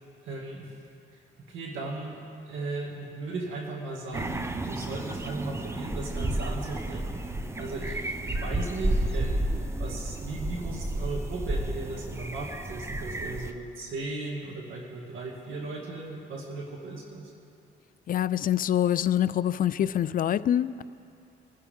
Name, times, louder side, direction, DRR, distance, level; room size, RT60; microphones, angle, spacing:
voice 1, 0.2-0.7 1.5-2.2 2.5-7.2 7.6-9.4 9.8-17.3, right 3 dB, 80° right, -1 dB, 2.1 m, -37 dB
sound 1, 4.1-13.5, right 1 dB, 15° right, 0.7 m, -31 dB
voice 2, 18.1-20.8, left 10 dB, 45° left, 16 dB, 0.4 m, -25 dB
23.5 x 11.0 x 3.6 m, 2.6 s
cardioid pair, 90°, 20 cm